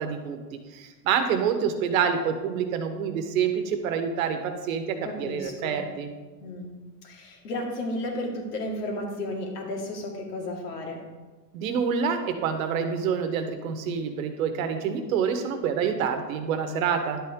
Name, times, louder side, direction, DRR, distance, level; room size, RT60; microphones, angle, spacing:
voice 1, 0.0-6.1 11.5-17.2, right 7 dB, 55° right, 7 dB, 1.2 m, -27 dB
voice 2, 5.0-5.8 6.4-6.7 7.0-11.0, left 1 dB, 70° left, 1 dB, 2.4 m, -33 dB
10.5 x 7.9 x 3.6 m, 1.3 s
supercardioid pair, 150°, 50 cm